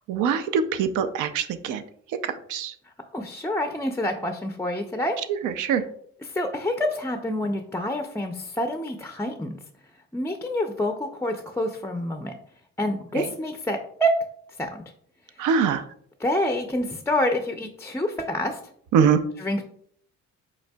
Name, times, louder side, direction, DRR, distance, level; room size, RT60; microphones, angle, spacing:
voice 1, 0.1-1.8 2.2-2.7 5.4-5.8 13.1-13.3 15.4-15.8 18.9-19.2, right 7 dB, 80° right, 10 dB, 0.5 m, -23 dB
voice 2, 3.1-5.2 6.2-9.6 10.1-12.3 12.8-14.1 14.6-14.8 15.4-15.5 16.2-18.6 19.4-19.6, left 1 dB, 10° left, 5 dB, 0.4 m, -27 dB
5.3 x 4.0 x 2.2 m, 0.63 s
cardioid pair, 90°, 30 cm